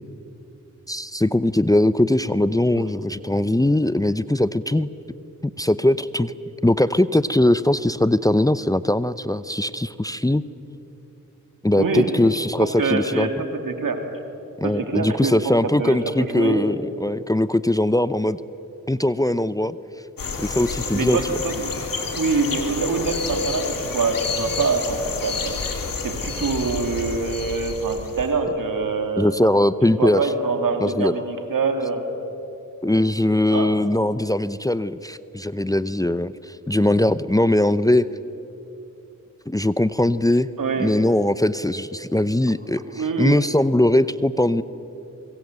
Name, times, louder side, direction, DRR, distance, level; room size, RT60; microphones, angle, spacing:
voice 1, 0.9-4.9 5.4-6.3 6.6-10.5 11.6-13.3 14.6-18.4 18.9-19.8 20.4-21.2 29.2-30.2 30.8-31.1 32.8-38.1 39.5-40.5 40.8-44.6, left 1 dB, 10° left, 15 dB, 0.7 m, -20 dB
voice 2, 11.8-12.1 12.6-14.0 14.6-15.5 15.8-16.6 20.9-21.7 22.1-25.6 26.0-29.5 29.8-32.0 33.5-33.7 40.6-40.9 42.9-43.4, right 4 dB, 80° right, 5 dB, 2.9 m, -25 dB
sound 1, 20.2-28.3, left 4 dB, 80° left, 2.5 m, -30 dB
25.0 x 22.0 x 8.1 m, 2.9 s
cardioid pair, 45°, 33 cm